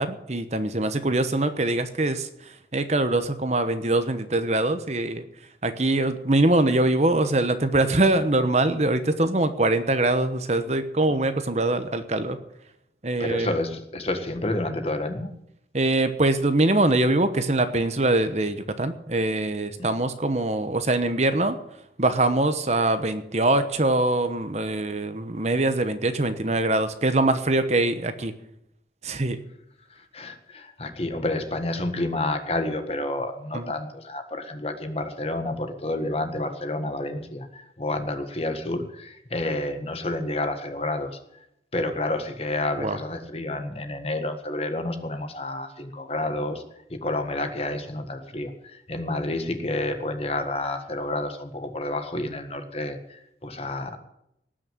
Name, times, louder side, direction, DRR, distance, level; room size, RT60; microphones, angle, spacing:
voice 1, 0.0-5.3 5.6-12.4 13.0-13.5 15.7-21.6 22.0-28.3 29.0-29.4 33.5-33.7 42.8-43.0, right 2 dB, 40° right, 10 dB, 1.0 m, -23 dB
voice 2, 13.2-15.3 29.9-41.2 41.7-46.6 46.9-54.0, left 2 dB, 35° left, 7 dB, 1.6 m, -29 dB
19.0 x 6.4 x 8.9 m, 0.79 s
head